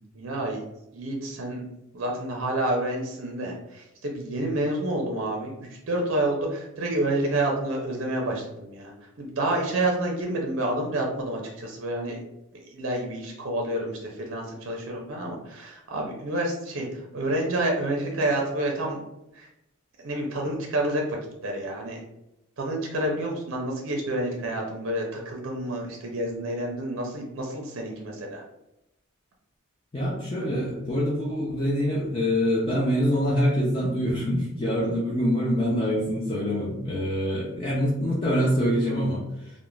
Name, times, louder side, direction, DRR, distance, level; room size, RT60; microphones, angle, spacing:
voice 1, 0.1-0.6 0.9-1.6 1.9-5.5 5.9-12.2 12.5-19.0 19.3-19.5 20.0-21.2 21.4-22.0 22.6-28.4, right 1 dB, 60° right, 1 dB, 0.5 m, -29 dB
voice 2, 29.9-39.3, equal, 25° left, -6 dB, 0.4 m, -25 dB
2.4 x 2.1 x 3.0 m, 0.87 s
head